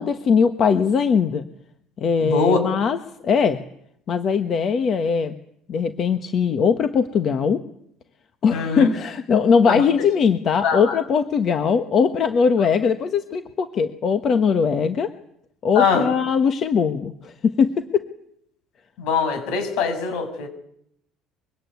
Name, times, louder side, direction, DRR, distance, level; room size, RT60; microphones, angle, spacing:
voice 1, 0.0-1.4 2.0-3.0 3.2-3.6 4.1-5.3 5.7-7.6 8.4-15.1 15.6-18.1, left 6 dB, 30° left, 9 dB, 1.2 m, -20 dB
voice 2, 2.2-2.6 8.5-8.9 9.6-9.8 10.6-11.0 15.8-16.1 19.0-20.5, left 5 dB, 65° left, 8 dB, 6.9 m, -22 dB
24.5 x 23.0 x 9.4 m, 0.72 s
cardioid pair, 175°, 0 cm